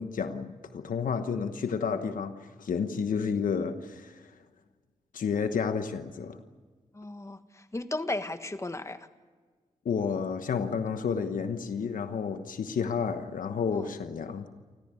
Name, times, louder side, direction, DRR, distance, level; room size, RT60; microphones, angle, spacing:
voice 1, 0.0-2.3 2.6-4.2 5.1-6.4 9.8-14.5, left 6 dB, 90° left, 9 dB, 1.1 m, -31 dB
voice 2, 6.9-9.1 13.7-13.9, left 2 dB, 20° left, 10 dB, 1.4 m, -35 dB
28.5 x 14.5 x 9.6 m, 1.5 s
cardioid pair, 75°, 14 cm